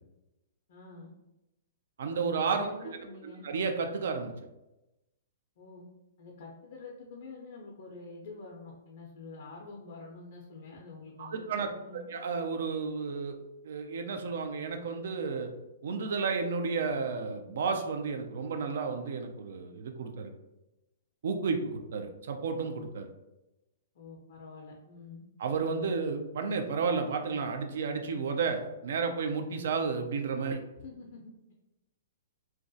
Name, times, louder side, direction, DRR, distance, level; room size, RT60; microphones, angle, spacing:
voice 1, 0.7-1.1 2.6-3.4 5.6-5.8 6.2-12.1 23.9-25.2 30.8-31.5, left 3 dB, 60° left, -1 dB, 0.4 m, -47 dB
voice 2, 2.0-4.3 11.2-13.4 13.6-15.5 15.8-20.3 21.2-23.1 25.4-30.6, right 5 dB, 65° right, 5 dB, 0.3 m, -32 dB
2.3 x 2.1 x 2.6 m, 0.96 s
hypercardioid pair, 120°, 0 cm